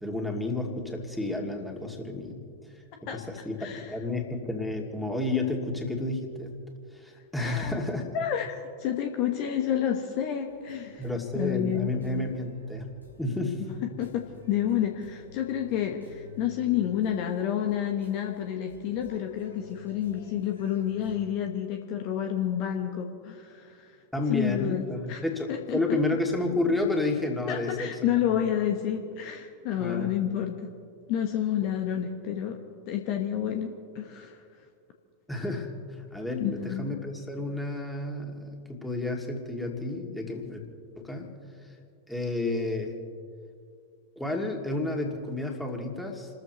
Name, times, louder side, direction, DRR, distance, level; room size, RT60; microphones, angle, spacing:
voice 1, 0.0-2.4 3.1-6.5 6.9-8.2 11.0-12.9 13.2-13.6 24.1-28.4 29.8-30.1 35.3-35.7 36.1-40.6 40.9-41.3 42.1-42.9 44.2-46.3, left 2 dB, 5° left, 0 dB, 2.6 m, -31 dB
voice 2, 3.6-3.9 7.4-7.8 8.1-11.0 11.3-11.9 14.0-23.9 24.3-25.2 25.5-25.8 27.5-30.7 31.1-32.6 32.9-34.4 36.4-36.9, left 10 dB, 45° left, 3 dB, 1.3 m, -29 dB
sound 1, 10.5-21.2, left 3 dB, 90° left, 3.2 m, -52 dB
29.5 x 14.0 x 3.1 m, 2.3 s
figure-of-eight pair, 90°, 0 cm